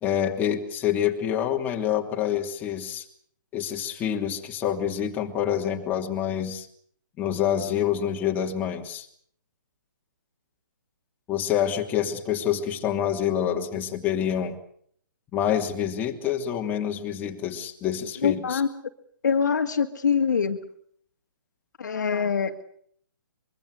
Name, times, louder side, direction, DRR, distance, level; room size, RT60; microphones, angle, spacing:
voice 1, 0.0-3.1 3.5-6.7 7.2-9.1 11.3-14.6 15.3-18.6, left 9 dB, 15° left, 2 dB, 3.0 m, -27 dB
voice 2, 18.2-18.7 19.2-20.6 21.8-22.6, left 6 dB, 60° left, 6 dB, 2.2 m, -24 dB
25.0 x 23.5 x 6.5 m, 0.63 s
figure-of-eight pair, 135°, 11 cm